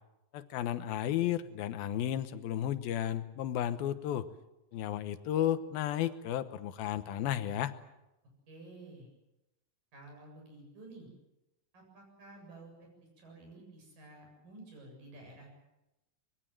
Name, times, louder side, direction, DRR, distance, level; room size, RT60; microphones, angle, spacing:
voice 1, 0.3-4.3 4.7-7.7, left 11 dB, 90° left, 12 dB, 2.9 m, -33 dB
voice 2, 8.5-9.1 9.9-11.1 11.7-12.9 13.2-15.5, right 2 dB, 70° right, 1 dB, 9.3 m, -52 dB
25.0 x 22.0 x 7.7 m, 0.96 s
omnidirectional pair, 4.1 m